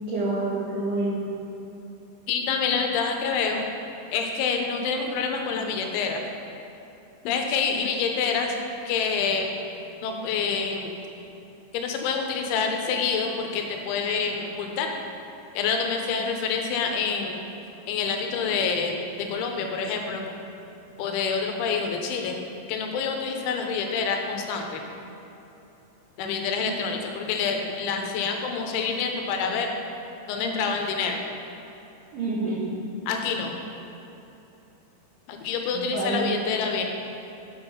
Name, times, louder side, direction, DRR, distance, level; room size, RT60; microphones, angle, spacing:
voice 1, 0.1-1.2 32.1-32.6 35.7-36.2, right 2 dB, 85° right, -7 dB, 1.8 m, -27 dB
voice 2, 2.3-3.6 4.1-6.2 7.2-8.5 8.9-9.6 10.0-10.9 11.7-14.9 15.6-17.4 17.9-20.3 21.0-22.4 22.7-24.8 26.2-29.7 30.3-31.2 33.1-33.5 35.3-36.8, left 5 dB, 90° left, 3 dB, 3.1 m, -27 dB
7.7 x 5.4 x 5.8 m, 3.0 s
omnidirectional pair, 5.4 m